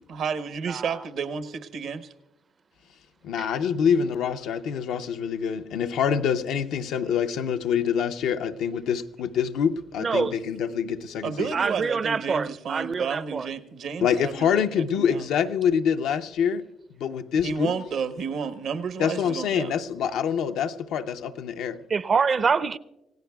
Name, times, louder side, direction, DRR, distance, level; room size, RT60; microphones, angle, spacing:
voice 1, 0.1-2.1 11.2-15.2 17.4-19.7, right 6 dB, 70° right, 0.9 m, -31 dB
voice 2, 3.2-11.5 14.0-16.7 17.0-17.7 19.0-21.8, left 7 dB, 85° left, 0.6 m, -26 dB
voice 3, 10.0-10.4 11.5-13.5 21.9-22.8, right 5 dB, 40° right, 0.5 m, -25 dB
27.5 x 16.5 x 2.3 m
cardioid pair, 90°, 0 cm